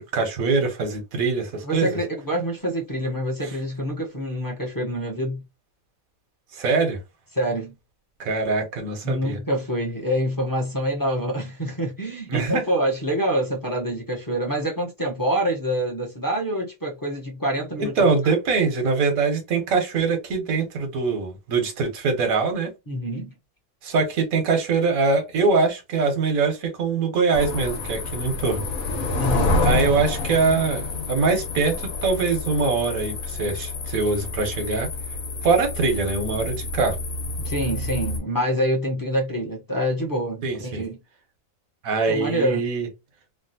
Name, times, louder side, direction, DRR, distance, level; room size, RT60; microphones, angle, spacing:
voice 1, 0.0-2.0 3.4-3.5 6.5-7.0 8.2-9.4 12.3-12.6 17.8-22.7 23.8-28.7 29.6-34.9 35.4-37.0 40.4-40.8 41.8-42.9, right 4 dB, 85° right, 1.4 m, -23 dB
voice 2, 1.6-5.4 7.3-7.7 9.0-18.3 22.9-23.3 29.2-29.6 37.4-41.0 42.1-42.6, equal, 20° left, 0.8 m, -26 dB
sound 1, 27.3-38.2, left 2 dB, 90° left, 1.3 m, -28 dB
3.1 x 2.4 x 2.6 m
omnidirectional pair, 1.4 m